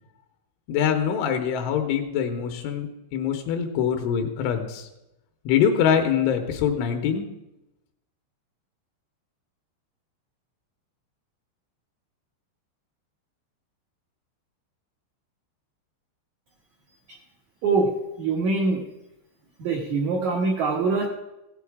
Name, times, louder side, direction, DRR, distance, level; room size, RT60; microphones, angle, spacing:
voice 1, 0.7-4.9 5.5-7.3, left 8 dB, 85° left, 4 dB, 3.4 m, -24 dB
voice 2, 18.2-18.8 19.6-21.1, right 4 dB, 85° right, -1 dB, 1.6 m, -23 dB
16.0 x 8.2 x 4.7 m, 0.92 s
omnidirectional pair, 5.4 m